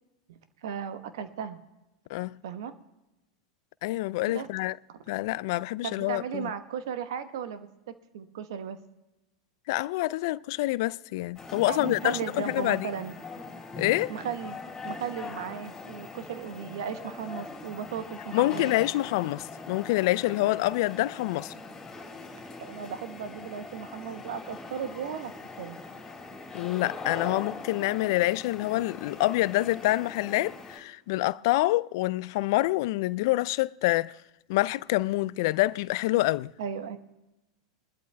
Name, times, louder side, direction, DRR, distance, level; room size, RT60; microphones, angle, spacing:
voice 1, 0.3-1.6 2.4-2.7 4.3-4.5 4.9-5.0 5.8-7.7 8.1-8.8 11.6-13.2 14.1-18.7 22.6-25.3 25.6-25.8 36.6-37.0, right 7 dB, 70° right, 1.0 m, -36 dB
voice 2, 3.8-4.8 5.1-6.5 9.7-12.2 12.5-12.9 13.8-14.1 18.3-21.5 26.5-34.1 34.5-36.5, left 18 dB, 60° left, 0.3 m, -27 dB
sound 1, 11.3-30.8, left 3 dB, 20° left, 3.4 m, -42 dB
23.0 x 12.0 x 2.2 m
hypercardioid pair, 95°, 2 cm